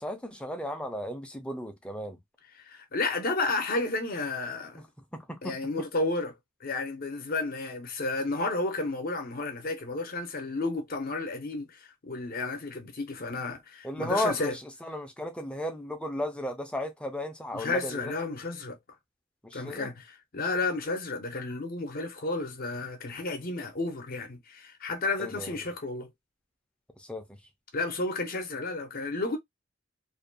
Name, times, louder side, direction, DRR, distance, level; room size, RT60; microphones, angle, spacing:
voice 1, 0.0-2.2 4.8-4.9 5.1-5.6 13.8-18.1 19.4-19.9 25.2-25.6 27.0-27.4, left 1 dB, 5° left, 0.5 m, -34 dB
voice 2, 2.5-4.8 5.4-6.3 6.6-14.5 17.5-18.8 19.5-26.1 27.7-29.4, left 3 dB, 50° left, 0.7 m, -32 dB
2.5 x 2.2 x 2.5 m
head